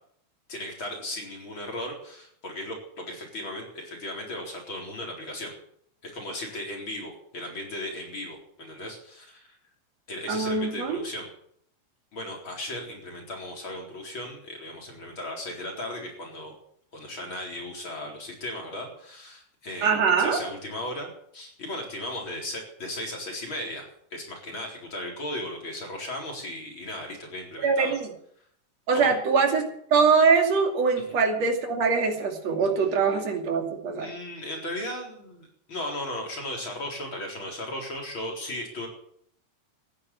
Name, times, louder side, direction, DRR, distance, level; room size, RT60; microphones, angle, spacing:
voice 1, 0.5-5.6 6.0-9.5 10.1-11.3 12.1-16.5 16.9-28.0 28.9-29.1 34.0-38.9, left 1 dB, 40° left, 0 dB, 4.8 m, -36 dB
voice 2, 10.3-11.0 19.8-20.4 27.6-28.1 28.9-34.1, right 5 dB, 60° right, 3 dB, 3.7 m, -23 dB
14.0 x 11.0 x 8.6 m, 0.67 s
omnidirectional pair, 3.4 m